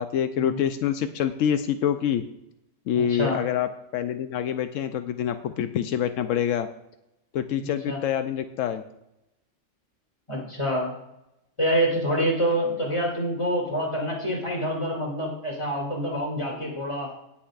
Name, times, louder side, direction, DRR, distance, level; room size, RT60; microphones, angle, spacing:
voice 1, 0.0-2.2 2.9-6.7 7.3-8.8, left 9 dB, 85° left, 9 dB, 1.0 m, -26 dB
voice 2, 2.9-3.4 7.6-8.0 10.3-10.9 11.6-17.1, equal, 25° left, -1 dB, 2.7 m, -27 dB
17.5 x 7.2 x 2.5 m, 0.85 s
omnidirectional pair, 1.3 m